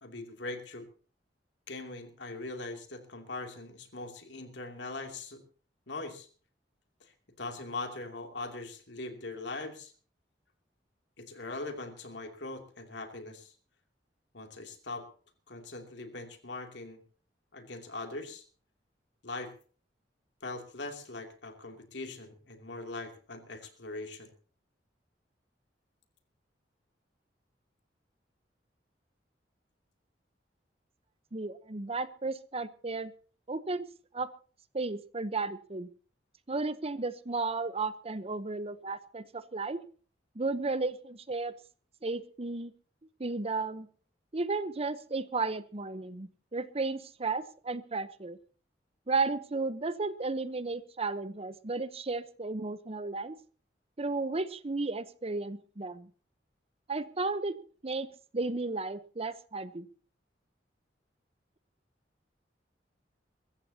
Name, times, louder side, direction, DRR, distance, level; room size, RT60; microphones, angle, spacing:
voice 1, 0.0-0.9 1.7-5.4 5.9-6.3 7.0-7.1 7.4-9.9 11.2-13.5 14.3-15.1 15.5-17.0 17.5-18.4 19.2-19.5 20.4-24.3, left 2 dB, 75° left, 5 dB, 2.8 m, -41 dB
voice 2, 31.3-33.1 33.5-33.8 34.1-34.3 34.7-35.9 36.5-39.8 40.3-41.5 42.0-42.7 43.2-43.9 44.3-48.4 49.1-53.3 54.0-56.1 56.9-57.6 57.8-58.1 58.3-59.9, right 3 dB, 35° right, 14 dB, 0.9 m, -34 dB
23.0 x 14.5 x 2.9 m, 0.41 s
head